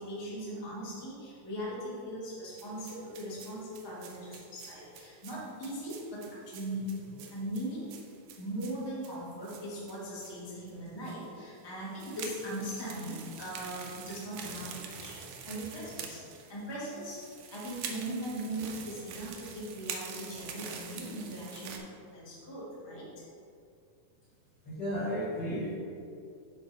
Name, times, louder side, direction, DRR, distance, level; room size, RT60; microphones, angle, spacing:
voice 1, 0.0-7.9 8.4-23.2, right 1 dB, 15° left, -8 dB, 1.0 m, -39 dB
sound 1, 2.6-10.4 10.7-10.8 11.0-11.2 11.8-21.8, right 6 dB, 90° right, 2.2 m, -46 dB
voice 2, 24.7-25.7, equal, 40° left, -8 dB, 1.8 m, -33 dB
8.1 x 4.2 x 5.4 m, 2.4 s
omnidirectional pair, 3.5 m